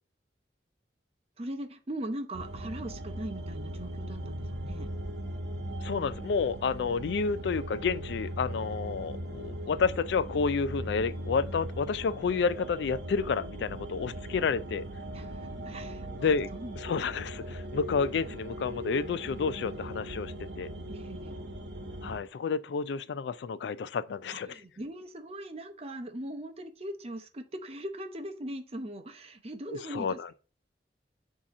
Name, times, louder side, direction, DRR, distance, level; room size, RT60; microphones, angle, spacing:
voice 1, 1.4-4.9 15.1-16.8 20.9-21.4 24.3-30.3, right 1 dB, 35° right, 0.7 m, -40 dB
sound 1, 2.3-22.2, right 1 dB, 85° right, 1.1 m, -39 dB
voice 2, 5.8-14.8 16.2-20.7 22.0-24.6 29.7-30.3, left 5 dB, 70° left, 0.3 m, -30 dB
7.3 x 2.9 x 5.3 m
head